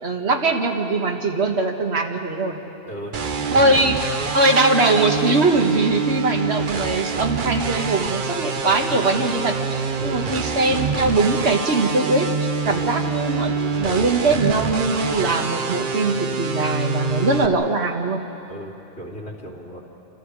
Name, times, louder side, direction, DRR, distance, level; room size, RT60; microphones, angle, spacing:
voice 1, 0.0-2.6 3.5-4.0 4.3-18.2, right 2 dB, 85° right, 3 dB, 1.8 m, -21 dB
voice 2, 2.8-3.6 10.0-10.3 12.6-12.9 18.5-19.8, equal, 85° left, -2 dB, 3.3 m, -36 dB
sound 1, 3.1-17.5, right 5 dB, 55° right, 1.0 m, -26 dB
29.0 x 26.0 x 4.9 m, 2.9 s
omnidirectional pair, 1.1 m